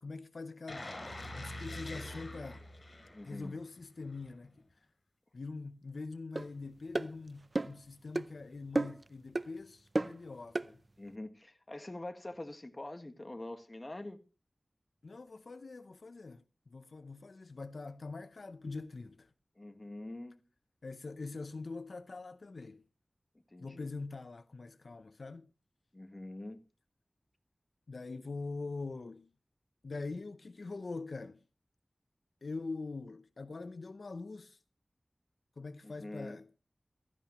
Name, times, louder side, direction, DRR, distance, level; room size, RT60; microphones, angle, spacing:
voice 1, 0.0-1.0 1.3-2.6 3.2-4.7 5.3-10.8 15.0-19.3 20.8-22.8 23.6-25.5 27.9-29.3 29.8-31.4 32.4-34.6 35.6-36.5, left 3 dB, 85° left, 0.6 m, -43 dB
sound 1, 0.7-3.6 4.0-4.2, left 1 dB, 60° left, 5.1 m, -44 dB
voice 2, 3.1-3.6 11.0-14.2 19.6-20.4 23.5-23.9 25.9-26.6 35.8-36.4, left 1 dB, 35° left, 1.6 m, -45 dB
sound 2, 6.4-6.5 6.9-7.1 7.6-7.8 8.1-8.3 8.8-9.1 9.4-9.5 10.0-10.2 10.5-10.7, right 2 dB, 50° right, 0.5 m, -32 dB
16.0 x 13.5 x 3.0 m
wide cardioid pair, 65°, 0 cm